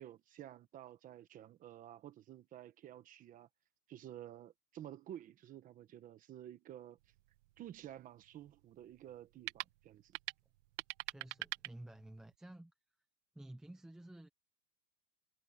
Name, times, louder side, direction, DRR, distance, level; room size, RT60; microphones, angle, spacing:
voice 1, 0.0-3.5 3.9-7.0 7.6-10.2, right 12 dB, 20° right, 1.1 m, -52 dB
sound 1, 7.0-12.4, right 19 dB, 50° right, 2.0 m, -47 dB
voice 2, 11.1-12.7 13.3-14.3, right 1 dB, ahead, 0.6 m, -52 dB
supercardioid pair, 170°, 46 cm